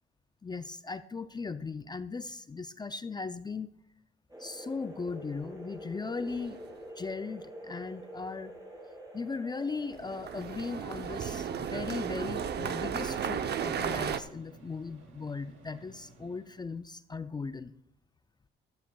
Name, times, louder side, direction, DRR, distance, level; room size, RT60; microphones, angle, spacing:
voice 1, 0.4-3.7 4.4-6.6 7.0-8.6 9.1-17.7, left 4 dB, 20° left, 12 dB, 0.4 m, -38 dB
sound 1, 4.3-10.9, right 1 dB, 20° right, 5.5 m, -47 dB
sound 2, 6.3-6.7 9.9-14.2, right 7 dB, 55° right, 0.7 m, -34 dB
Microwave oven, 12.6-16.8, right 2 dB, 75° right, 2.5 m, -56 dB
15.5 x 12.5 x 2.3 m, 0.78 s
cardioid pair, 90°, 20 cm